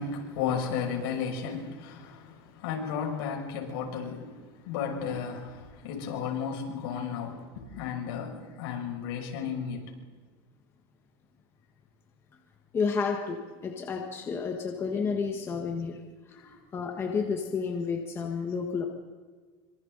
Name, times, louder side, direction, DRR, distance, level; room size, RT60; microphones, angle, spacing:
voice 1, 0.0-9.9 16.3-16.6, left 7 dB, 70° left, -1 dB, 6.9 m, -34 dB
voice 2, 12.7-16.0 16.4-18.8, left 5 dB, 20° left, 1 dB, 1.7 m, -31 dB
25.5 x 25.5 x 4.2 m, 1.5 s
supercardioid pair, 170°, 13 cm